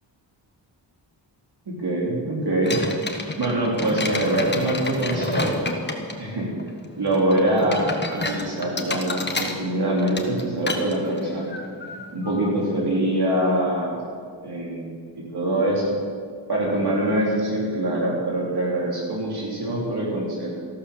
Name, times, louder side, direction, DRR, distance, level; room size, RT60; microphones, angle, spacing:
voice 1, 1.7-2.8 3.4-5.7 6.2-6.5 7.0-11.5 12.1-14.0 14.4-15.9 16.5-20.6, right 1 dB, 60° right, -4 dB, 3.5 m, -24 dB
sound 1, 2.6-13.6, left 2 dB, 25° left, 1.4 m, -31 dB
14.5 x 12.5 x 6.8 m, 2.1 s
wide cardioid pair, 125°, 44 cm